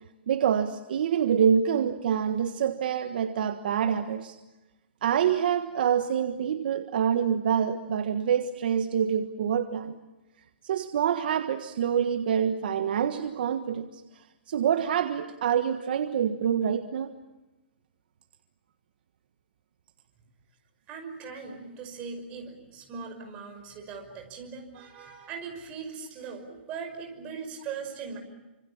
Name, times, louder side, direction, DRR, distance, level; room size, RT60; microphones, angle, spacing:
voice 1, 0.3-4.3 5.0-10.0 10.6-14.0 14.5-17.1, right 8 dB, 55° right, 8 dB, 1.5 m, -26 dB
voice 2, 20.9-28.2, right 5 dB, 20° right, 3 dB, 5.8 m, -40 dB
29.0 x 26.5 x 7.4 m, 1.0 s
hypercardioid pair, 165°, 6 cm